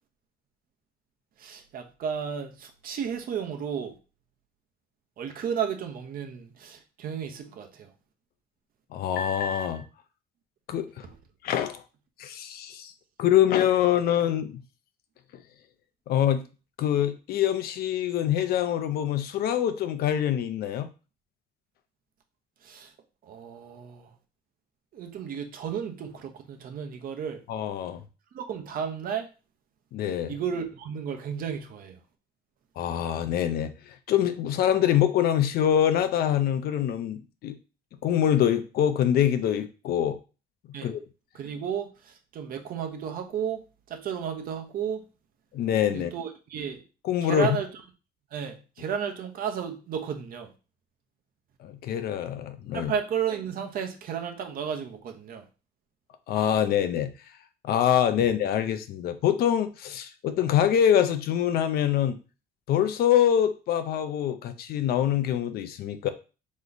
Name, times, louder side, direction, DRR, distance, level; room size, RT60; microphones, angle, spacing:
voice 1, 1.4-3.9 5.2-7.9 11.0-11.2 22.6-22.9 23.2-24.1 24.9-27.4 28.3-29.3 30.3-32.0 40.7-40.9 41.3-45.1 45.9-46.8 47.2-47.7 48.3-50.5 52.7-55.5, right 7 dB, 60° right, 0.9 m, -33 dB
voice 2, 8.9-9.8 10.7-11.1 11.4-11.8 12.2-12.9 13.2-14.6 16.1-16.4 16.8-20.9 27.5-28.0 29.9-30.3 32.8-37.6 38.0-40.2 40.8-41.0 45.5-46.1 47.0-47.5 51.6-52.9 56.3-57.1 57.6-62.2 62.7-66.1, left 10 dB, 65° left, 0.6 m, -25 dB
3.4 x 3.1 x 4.0 m
cardioid pair, 110°, 17 cm